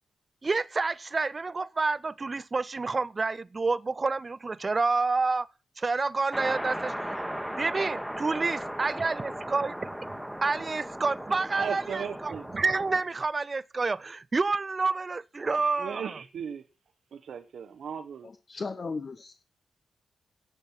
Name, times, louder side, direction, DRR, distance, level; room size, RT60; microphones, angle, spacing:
voice 1, 0.4-5.5 5.8-6.9 7.6-9.8 10.4-16.0, right 3 dB, 40° right, 0.5 m, -28 dB
sound 1, 6.3-13.0, equal, 5° right, 1.4 m, -36 dB
voice 2, 11.6-12.5 15.8-16.6 17.1-18.3, right 7 dB, 75° right, 0.9 m, -36 dB
voice 3, 18.2-19.3, left 4 dB, 50° left, 1.0 m, -36 dB
10.5 x 7.8 x 5.7 m
supercardioid pair, 45°, 0 cm